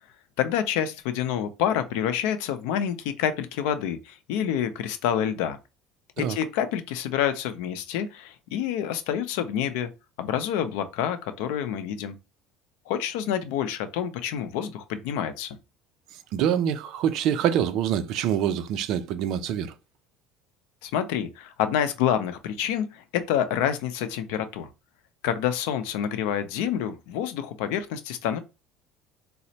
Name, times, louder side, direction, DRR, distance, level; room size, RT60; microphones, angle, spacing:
voice 1, 0.4-5.6 6.2-9.9 10.2-12.1 12.9-15.6 20.8-24.7 25.2-28.4, left 9 dB, 85° left, 0.5 m, -28 dB
voice 2, 16.3-19.7, right 9 dB, 55° right, 0.4 m, -25 dB
4.1 x 2.0 x 2.7 m
cardioid pair, 150°, 0 cm